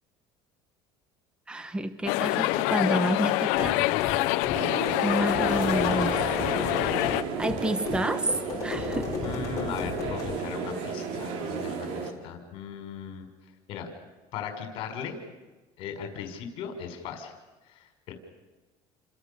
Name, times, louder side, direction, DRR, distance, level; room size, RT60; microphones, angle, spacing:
voice 1, 1.5-4.1 5.0-6.2 7.4-9.2, right 1 dB, 10° right, 10 dB, 1.4 m, -29 dB
sound 1, 2.1-7.2, left 19 dB, 85° left, 0.9 m, -26 dB
sound 2, 3.5-10.4, left 6 dB, 30° left, 4.4 m, -35 dB
voice 2, 3.7-4.2 9.2-13.3 13.7-13.9 14.3-15.2 15.8-17.3 17.7-18.1, left 7 dB, 55° left, 6 dB, 5.3 m, -38 dB
sound 3, 4.5-12.1, right 5 dB, 65° right, 4.0 m, -33 dB
29.5 x 26.0 x 7.0 m, 1.1 s
cardioid pair, 160°, 11 cm